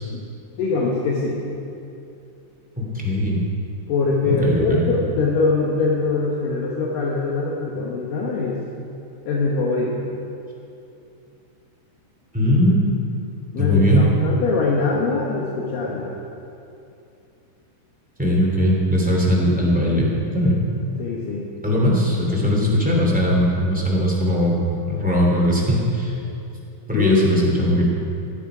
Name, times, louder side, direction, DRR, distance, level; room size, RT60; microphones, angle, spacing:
voice 1, 0.6-1.4 3.9-8.6 9.3-10.0 13.5-16.1 21.0-21.5 26.9-27.3, left 3 dB, 70° left, -3 dB, 2.2 m, -22 dB
voice 2, 2.7-3.4 4.2-4.9 12.3-12.8 13.6-14.0 18.2-20.6 21.6-24.6 24.9-26.1 26.9-27.9, equal, 5° right, -4 dB, 1.1 m, -19 dB
17.0 x 13.5 x 5.0 m, 2.7 s
omnidirectional pair, 5.6 m